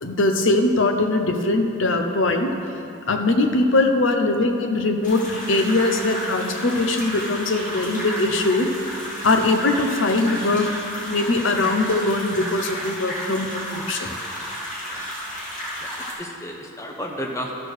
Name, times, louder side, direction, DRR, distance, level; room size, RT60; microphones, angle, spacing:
voice 1, 0.0-2.5 3.1-8.7 9.2-14.1, left 2 dB, 60° left, 5 dB, 0.8 m, -21 dB
sound 1, 5.0-16.1, equal, 35° left, 2.2 m, -32 dB
voice 2, 15.8-17.6, equal, 15° left, 0 dB, 0.9 m, -33 dB
12.5 x 4.6 x 6.6 m, 2.7 s
head